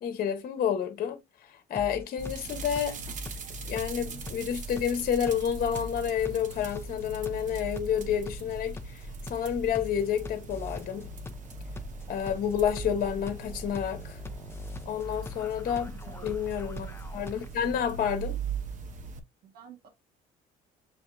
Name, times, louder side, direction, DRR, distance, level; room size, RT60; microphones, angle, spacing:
voice 1, 0.0-3.1 3.6-11.1 12.1-14.2 14.9-18.4, left 8 dB, 60° left, 1.0 m, -30 dB
sound 1, 1.8-17.7, left 2 dB, 15° left, 0.6 m, -42 dB
sound 2, 2.2-19.2, right 6 dB, 50° right, 0.9 m, -41 dB
voice 2, 16.1-16.4 16.7-16.9 19.4-19.9, right 8 dB, 65° right, 1.4 m, -50 dB
6.8 x 2.9 x 2.3 m
cardioid pair, 110°, 17 cm